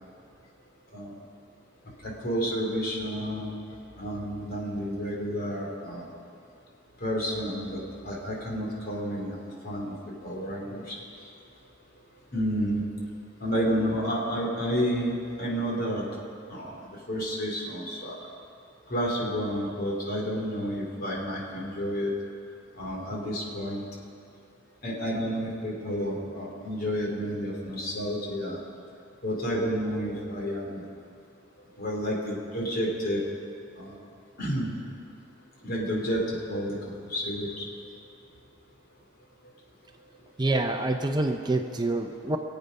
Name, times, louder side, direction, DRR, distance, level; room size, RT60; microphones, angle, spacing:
voice 1, 2.0-3.5 4.0-6.0 7.0-9.4 9.6-11.3 12.3-12.8 13.4-16.0 16.5-16.7 17.1-18.1 18.9-22.1 22.8-23.8 24.8-28.6 29.2-30.8 31.8-33.2 33.8-34.0 34.4-34.7 35.6-36.8 37.1-37.7, equal, 50° left, -2 dB, 3.3 m, -30 dB
voice 2, 40.4-42.4, right 2 dB, 20° right, 5 dB, 0.6 m, -26 dB
23.5 x 8.2 x 5.4 m, 2.6 s
head